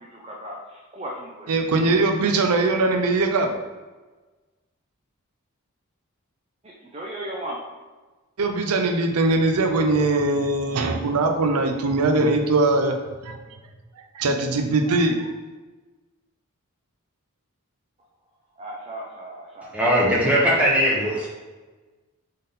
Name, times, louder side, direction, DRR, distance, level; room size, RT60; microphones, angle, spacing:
voice 1, 0.2-0.6 0.9-1.5 6.9-7.6 18.6-19.7, right 1 dB, 25° right, -3 dB, 0.5 m, -35 dB
voice 2, 1.5-3.6 8.4-13.0 13.2-13.4 14.1-15.3, right 2 dB, 80° right, 4 dB, 0.5 m, -21 dB
voice 3, 19.7-21.3, equal, 5° right, -6 dB, 1.0 m, -19 dB
3.6 x 3.6 x 4.0 m, 1.3 s
head